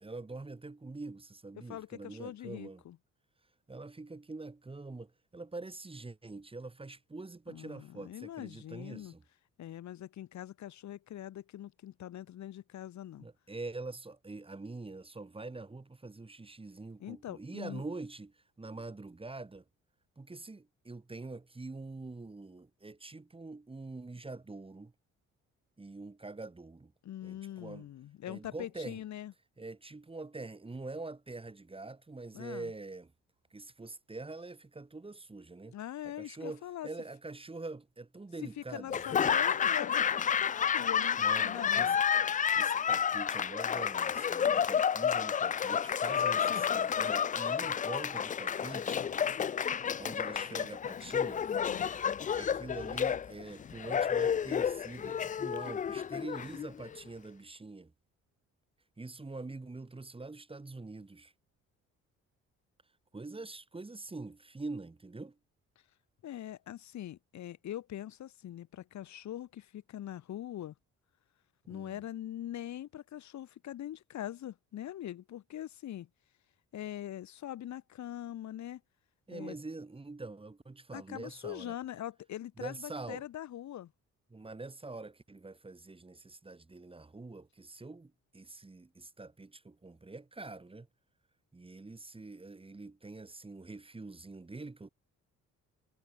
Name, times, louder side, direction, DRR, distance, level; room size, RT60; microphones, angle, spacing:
voice 1, 0.0-2.8 3.7-9.2 13.2-19.6 20.2-24.9 25.8-26.9 27.2-27.9 28.3-29.0 29.6-33.1 33.5-35.8 36.0-39.0 41.2-41.9 42.5-49.2 50.0-51.5 52.3-57.9 59.0-61.3 63.1-65.4 71.7-72.0 79.3-81.8 82.6-83.2 84.3-90.9 91.5-94.9, right 3 dB, 20° right, 2.3 m, -45 dB
voice 2, 1.5-3.0 7.5-9.1 9.6-13.3 17.0-17.8 27.0-29.3 32.3-32.7 35.7-36.9 38.6-42.0 51.6-51.9 66.2-70.7 71.7-76.1 76.7-78.8 79.3-79.6 80.9-83.9, left 12 dB, 65° left, 1.5 m, -43 dB
Laughter / Applause, 38.9-57.0, left 8 dB, 25° left, 0.4 m, -30 dB
cardioid pair, 90°, 30 cm